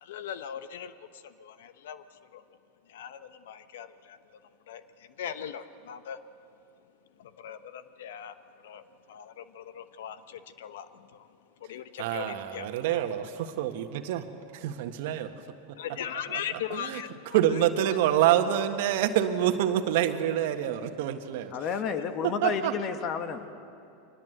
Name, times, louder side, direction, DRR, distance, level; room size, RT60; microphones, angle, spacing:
voice 1, 0.0-2.0 2.3-2.4 2.9-4.2 4.7-4.8 5.2-6.2 7.2-8.4 8.6-8.8 9.1-11.3 11.6-13.0 15.8-17.4 17.9-18.3, left 9 dB, 75° left, 12 dB, 1.0 m, -39 dB
voice 2, 12.0-14.3 14.5-15.3 16.3-17.0 17.3-21.5 22.2-22.8, right 11 dB, 65° right, 7 dB, 1.5 m, -27 dB
voice 3, 21.5-23.5, left 6 dB, 45° left, 8 dB, 1.7 m, -31 dB
24.0 x 19.5 x 8.0 m, 2.6 s
hypercardioid pair, 100°, 0 cm